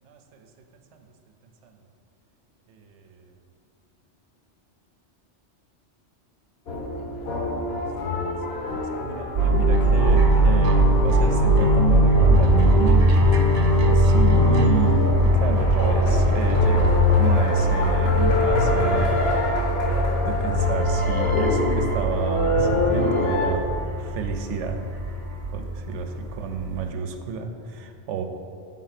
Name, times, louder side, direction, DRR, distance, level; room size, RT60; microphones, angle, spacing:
voice 1, 0.7-1.1 1.6-1.8 2.7-3.3 8.5-13.6 13.9-19.7 20.2-24.8 25.5-28.2, right 6 dB, 90° right, 5 dB, 0.9 m, -30 dB
sound 1, 6.7-23.5, left 3 dB, 60° left, 1.1 m, -26 dB
sound 2, 9.3-26.9, right 2 dB, 50° right, 0.4 m, -22 dB
sound 3, 9.5-15.1, left 2 dB, 20° left, 0.6 m, -23 dB
6.3 x 3.8 x 5.8 m, 2.4 s
omnidirectional pair, 1.2 m